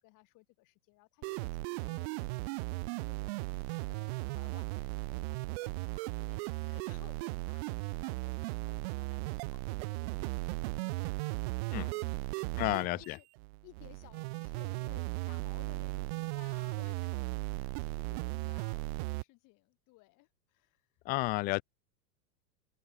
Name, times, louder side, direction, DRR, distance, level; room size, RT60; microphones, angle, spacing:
voice 1, 0.0-11.5 11.9-12.6 12.9-13.3 13.6-20.9 21.2-21.4, left 23 dB, 40° left, 7.9 m, -60 dB
sound 1, 1.2-19.2, right 26 dB, 40° right, 0.7 m, -37 dB
voice 2, 12.6-13.2 21.1-21.6, left 22 dB, 20° left, 0.5 m, -31 dB
supercardioid pair, 150°, 49 cm